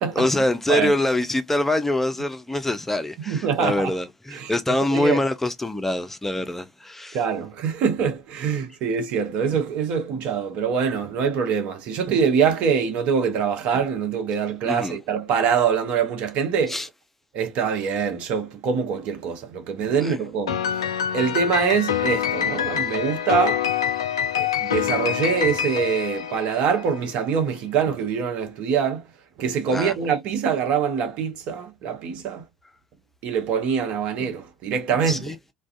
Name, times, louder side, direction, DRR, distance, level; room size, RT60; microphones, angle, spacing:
voice 1, 0.2-7.2 14.6-15.0 16.7-16.9 19.9-20.2 29.7-29.9 35.1-35.4, left 1 dB, 10° left, 0.4 m, -24 dB
voice 2, 3.3-3.9 4.3-4.5 4.9-5.2 7.1-16.8 17.3-20.8 21.1-23.6 24.4-29.0 29.4-32.4 33.2-35.3, right 6 dB, 50° right, 0.7 m, -24 dB
Piano, 20.5-27.0, left 9 dB, 75° left, 0.3 m, -25 dB
2.3 x 2.2 x 2.4 m
figure-of-eight pair, 65°, 3 cm